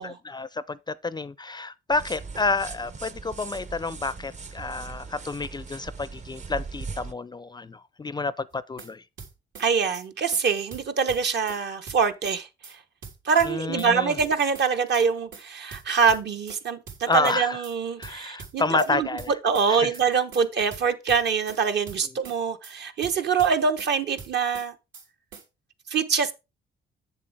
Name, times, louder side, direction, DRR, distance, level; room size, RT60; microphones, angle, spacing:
voice 1, 0.0-9.0 13.4-14.2 17.1-17.6 18.0-19.3 19.7-19.9, left 3 dB, 20° left, 0.4 m, -29 dB
sound 1, 1.9-7.1, right 4 dB, 35° right, 0.7 m, -39 dB
sound 2, 8.5-8.9 9.2-9.7 9.9-10.1 10.3-10.4 10.7-11.6 11.9-12.4 12.6-12.7 13.0-13.9 14.2-14.7 14.9-15.1 15.3-15.4 15.7-16.6 16.9-17.4 17.6-17.7 18.0-18.9 19.2-19.7 19.9-20.1 20.3-20.4 20.7-21.6 21.9-22.4 22.6-22.7 23.0-23.9 24.2-24.7 24.9-25.1 25.3-25.4, right 5 dB, 80° right, 3.7 m, -43 dB
voice 2, 9.6-12.5 13.2-19.1 19.4-24.7 25.9-26.3, right 6 dB, 60° right, 1.1 m, -24 dB
7.5 x 7.2 x 3.6 m
cardioid pair, 90°, 20 cm